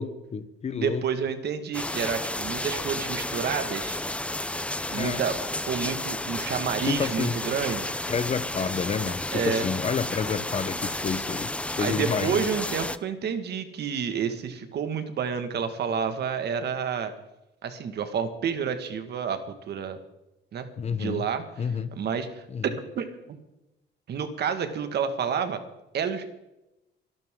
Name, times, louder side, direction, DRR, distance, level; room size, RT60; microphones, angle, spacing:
voice 1, 0.0-1.0 4.9-5.2 6.8-7.4 8.1-12.4 20.8-21.3 21.6-21.9 22.5-22.6, left 6 dB, 35° left, 13 dB, 1.0 m, -29 dB
voice 2, 0.7-4.0 4.9-8.0 9.3-9.7 11.8-17.1 17.6-19.4 19.7-20.0 20.5-20.7 20.9-21.4 22.0-23.1 24.1-25.6 25.9-26.4, right 7 dB, 55° right, 8 dB, 1.9 m, -29 dB
sound 1, 1.7-13.0, left 1 dB, 5° left, 0.6 m, -32 dB
24.5 x 11.5 x 3.8 m, 0.92 s
cardioid pair, 130°, 20 cm